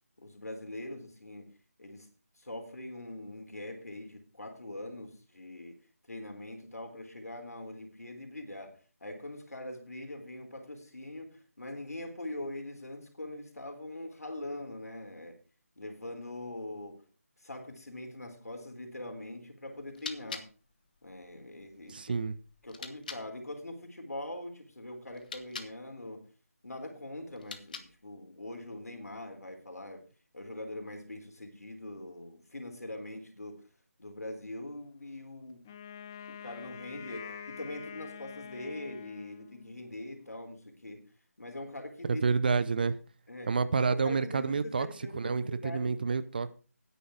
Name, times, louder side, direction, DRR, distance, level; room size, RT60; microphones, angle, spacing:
voice 1, 0.2-1.5 1.8-2.1 2.4-5.8 6.1-15.4 15.8-17.0 17.4-20.5 21.0-22.2 22.6-26.2 26.6-30.0 30.3-33.7 34.0-35.7 36.3-41.0 41.4-42.2 43.3-43.5 43.8-46.0, left 1 dB, 75° left, 3.8 m, -42 dB
sound 1, 19.7-23.3 25.1-25.8 27.3-28.1, left 5 dB, 30° left, 1.0 m, -46 dB
voice 2, 21.9-22.4 42.1-43.0 43.5-44.9 45.1-46.5, right 5 dB, 35° right, 0.7 m, -29 dB
Wind instrument woodwind instrument, 35.6-39.9, left 8 dB, 15° left, 0.4 m, -46 dB
10.0 x 9.7 x 4.9 m
figure-of-eight pair, 160°, 8 cm